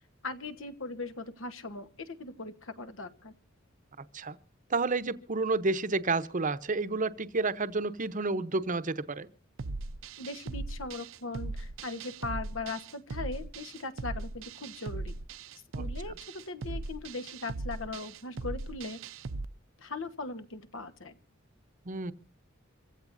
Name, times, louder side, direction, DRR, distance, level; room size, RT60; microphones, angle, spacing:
voice 1, 0.2-3.3 10.2-15.2 15.8-19.0 19.8-21.2, left 3 dB, 70° left, 1.3 m, -39 dB
voice 2, 4.7-9.3 15.7-15.8 21.9-22.1, right 3 dB, 40° right, 0.9 m, -30 dB
sound 1, 9.6-19.5, right 3 dB, 75° right, 0.7 m, -39 dB
26.0 x 15.5 x 2.7 m
head